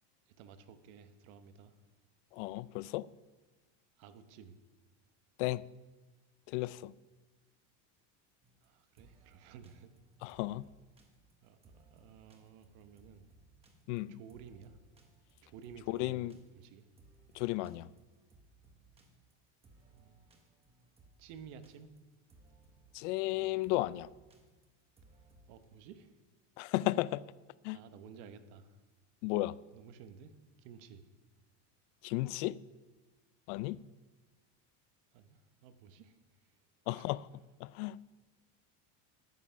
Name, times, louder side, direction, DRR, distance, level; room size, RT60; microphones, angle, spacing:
voice 1, 0.3-1.7 4.0-4.5 8.6-9.9 11.4-13.2 14.1-14.8 15.4-16.9 17.6-17.8 19.9-20.3 21.2-21.9 25.5-26.2 27.7-28.8 29.7-30.3 30.6-31.0 33.6-33.7 35.1-36.2 36.9-37.1, right 7 dB, 55° right, 0.9 m, -54 dB
voice 2, 2.3-3.1 5.4-5.7 6.5-6.9 10.2-10.7 13.9-14.1 15.9-16.3 17.3-17.9 22.9-24.1 26.6-27.2 27.6-27.8 29.2-29.6 32.0-32.6 33.5-33.8 36.9-37.3 37.6-38.0, left 18 dB, 80° left, 0.5 m, -34 dB
sound 1, 8.4-25.6, right 2 dB, 15° right, 1.0 m, -64 dB
9.8 x 9.4 x 5.6 m
cardioid pair, 175°, 36 cm